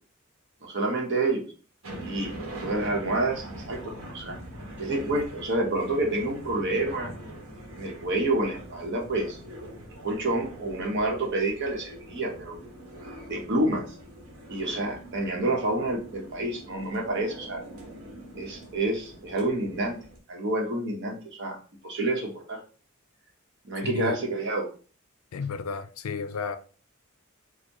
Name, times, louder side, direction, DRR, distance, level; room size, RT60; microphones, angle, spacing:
voice 1, 0.6-1.4 2.0-2.3 2.6-4.4 4.8-7.1 7.8-9.4 10.0-12.6 13.3-13.9 14.5-17.6 18.3-20.0 20.3-21.6 21.8-22.6 23.6-24.7, right 2 dB, 55° right, 1.0 m, -28 dB
sound 1, 1.8-20.2, right 1 dB, 85° right, 1.2 m, -43 dB
voice 2, 23.8-24.2 25.3-26.6, left 5 dB, 80° left, 0.4 m, -32 dB
4.4 x 2.2 x 2.9 m
head